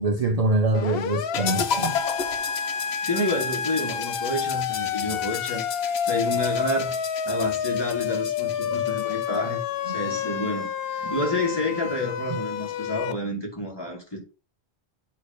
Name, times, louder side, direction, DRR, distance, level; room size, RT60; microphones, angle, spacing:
voice 1, 0.0-2.0 8.7-8.8 9.9-10.0 12.3-12.4, right 2 dB, 45° right, 0.7 m, -24 dB
Siren, 0.7-13.1, left 7 dB, 70° left, 0.8 m, -29 dB
sound 1, 1.3-9.4, left 6 dB, 90° left, 1.0 m, -33 dB
voice 2, 3.0-5.6 6.0-7.0 7.3-14.2, left 1 dB, 25° left, 2.3 m, -29 dB
8.3 x 3.1 x 5.1 m
omnidirectional pair, 1.1 m